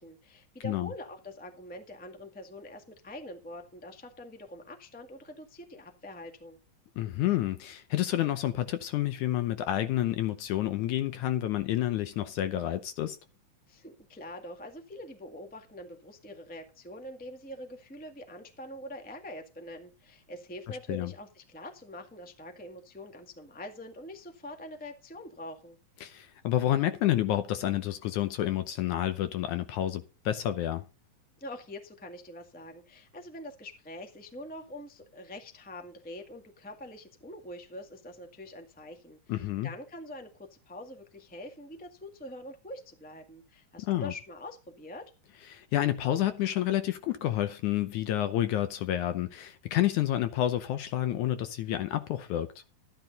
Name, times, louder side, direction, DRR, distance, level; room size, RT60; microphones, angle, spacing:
voice 1, 0.0-6.6 13.7-25.8 31.4-45.1, left 1 dB, 10° left, 0.4 m, -44 dB
voice 2, 7.0-13.2 20.7-21.1 26.0-30.8 39.3-39.7 43.8-44.1 45.5-52.5, left 13 dB, 75° left, 1.9 m, -29 dB
13.0 x 10.5 x 4.0 m
omnidirectional pair, 4.1 m